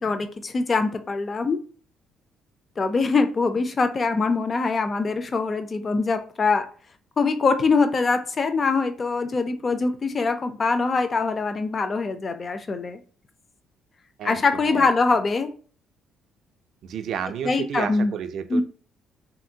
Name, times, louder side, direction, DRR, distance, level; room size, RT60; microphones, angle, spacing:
voice 1, 0.0-1.6 2.8-6.7 7.2-13.0 14.2-15.5 17.4-18.1 18.5-18.6, left 4 dB, 30° left, 9 dB, 0.4 m, -23 dB
voice 2, 14.2-14.9 16.8-18.6, right 8 dB, 65° right, 9 dB, 0.3 m, -31 dB
3.1 x 2.5 x 2.7 m, 0.42 s
cardioid pair, 130°, 0 cm